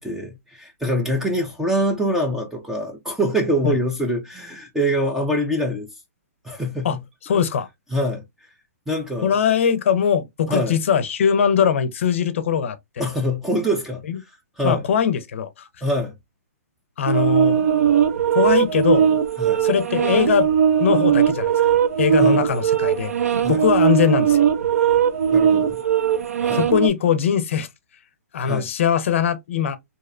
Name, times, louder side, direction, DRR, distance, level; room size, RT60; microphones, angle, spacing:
voice 1, 0.0-5.9 6.4-7.0 7.9-8.2 8.9-9.3 10.5-10.8 13.0-14.0 14.6-14.8 15.8-16.1 19.4-19.6 22.2-22.4 23.4-23.6 25.3-25.8 26.4-26.6 28.4-28.7, equal, 5° right, 0.3 m, -24 dB
voice 2, 7.2-7.7 9.2-13.1 14.1-14.2 14.6-15.7 17.0-17.6 18.3-19.1 19.6-20.5 20.8-21.5 22.0-23.1 23.5-24.4 26.5-27.7 28.3-29.8, left 8 dB, 55° left, 0.5 m, -21 dB
sound 1, 17.1-26.9, right 8 dB, 65° right, 0.5 m, -19 dB
2.6 x 2.1 x 2.4 m
hypercardioid pair, 160°, 8 cm